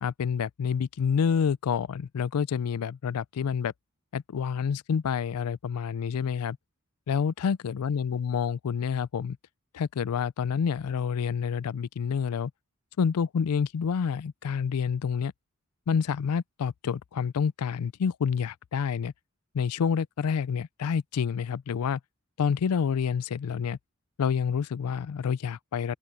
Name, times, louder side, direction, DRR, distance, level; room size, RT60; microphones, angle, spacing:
voice 1, 0.0-3.7 4.1-6.6 7.1-9.4 9.7-12.5 13.0-15.3 15.9-19.1 19.5-22.0 22.4-23.8 24.2-26.0, left 6 dB, 85° left, 0.4 m, -28 dB
open air
head